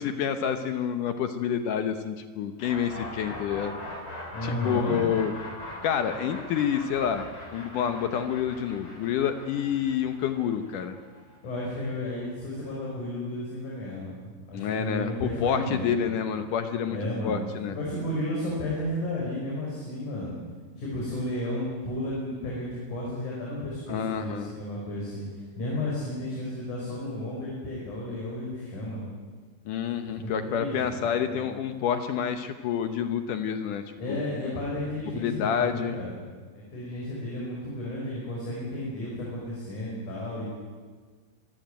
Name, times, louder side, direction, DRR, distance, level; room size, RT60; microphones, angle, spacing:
voice 1, 0.0-3.8 4.4-5.3 5.8-7.3 7.5-11.0 14.5-17.0 17.2-17.8 23.9-24.5 29.7-34.2 35.2-36.0, left 8 dB, 70° left, 8 dB, 2.0 m, -28 dB
sound 1, 2.6-12.4, left 1 dB, 30° left, 7.6 m, -41 dB
voice 2, 4.3-5.0 11.4-16.1 16.9-17.4 17.7-20.4 20.8-29.0 30.2-31.5 34.0-36.1 36.5-40.4, left 1 dB, 50° left, -4 dB, 6.3 m, -33 dB
24.5 x 15.5 x 9.2 m, 1.5 s
omnidirectional pair, 4.7 m